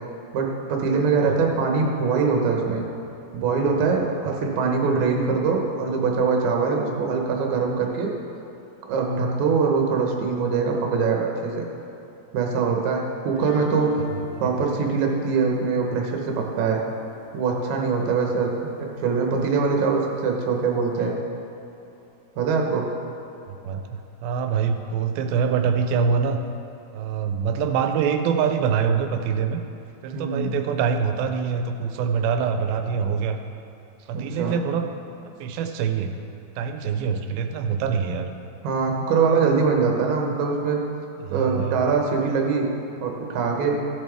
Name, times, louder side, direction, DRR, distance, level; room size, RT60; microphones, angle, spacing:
voice 1, 0.3-2.8 3.3-8.1 8.8-11.7 12.3-14.1 14.4-16.8 17.3-18.5 19.0-21.2 22.4-22.9 30.1-30.5 34.1-34.6 38.6-40.8 41.3-42.7 43.0-43.8, right 5 dB, 65° right, 1 dB, 2.2 m, -23 dB
sound 1, 13.4-18.3, left 9 dB, 85° left, 2.7 m, -41 dB
voice 2, 14.1-14.5 23.5-26.4 26.9-29.6 30.0-33.4 34.0-34.9 35.2-36.1 36.6-38.3 41.2-41.9, right 6 dB, 85° right, 6 dB, 2.5 m, -25 dB
14.5 x 7.4 x 3.4 m, 2.7 s
omnidirectional pair, 4.1 m